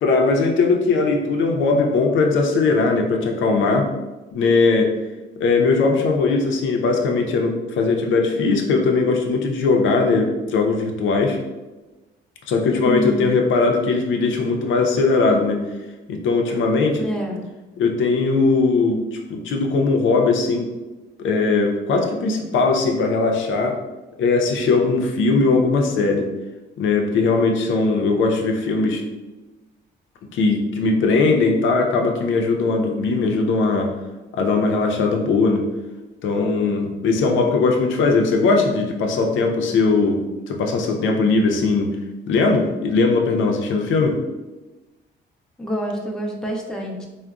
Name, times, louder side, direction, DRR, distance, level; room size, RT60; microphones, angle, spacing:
voice 1, 0.0-3.9 4.3-4.9 5.4-11.4 12.5-15.6 16.1-17.0 17.8-20.7 21.2-23.8 24.2-26.2 26.8-29.0 30.3-33.9 34.3-35.6 36.2-40.2 40.5-42.0 42.3-44.2, left 3 dB, 75° left, 2 dB, 0.5 m, -19 dB
voice 2, 12.8-13.3 17.0-17.4 45.6-47.1, right 1 dB, 5° left, 0 dB, 0.5 m, -27 dB
3.6 x 2.1 x 2.3 m, 1.1 s
cardioid pair, 90°, 20 cm